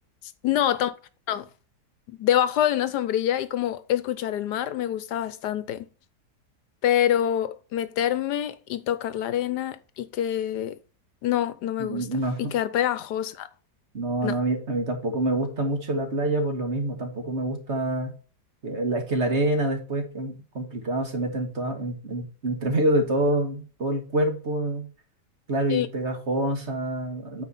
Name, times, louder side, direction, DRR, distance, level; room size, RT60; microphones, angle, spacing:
voice 1, 0.4-0.9 1.3-1.5 2.1-5.9 6.8-10.8 11.2-12.1 12.4-13.5 14.2-14.4 25.7-25.9, left 11 dB, 80° left, 1.3 m, -26 dB
voice 2, 11.8-12.5 13.9-18.1 18.6-24.9 25.5-27.4, right 1 dB, 40° right, 1.9 m, -26 dB
9.1 x 4.8 x 4.1 m
omnidirectional pair, 1.8 m